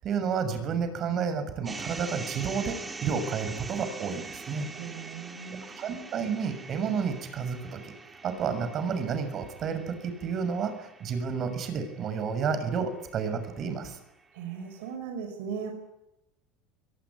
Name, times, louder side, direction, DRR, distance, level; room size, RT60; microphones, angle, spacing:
voice 1, 0.0-4.7 5.8-7.9 8.2-14.0, right 6 dB, 45° right, 10 dB, 6.6 m, -31 dB
sound 1, 1.7-13.8, right 3 dB, 20° right, 3.5 m, -44 dB
voice 2, 4.7-5.7 14.3-15.7, right 7 dB, 80° right, 5 dB, 5.5 m, -37 dB
23.0 x 19.0 x 9.7 m, 0.88 s
supercardioid pair, 115°, 0 cm